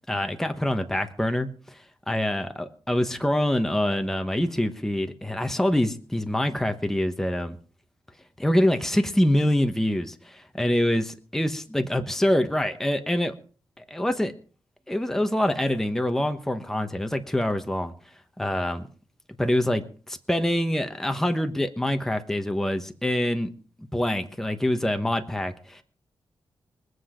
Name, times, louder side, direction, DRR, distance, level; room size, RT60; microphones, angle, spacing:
voice 1, 0.1-7.6 8.4-13.3 13.8-14.3 14.9-17.9 18.4-18.9 19.4-23.5 23.8-25.8, left 1 dB, 5° left, 6 dB, 1.1 m, -25 dB
23.0 x 7.9 x 5.1 m, 0.41 s
wide cardioid pair, 170°, 9 cm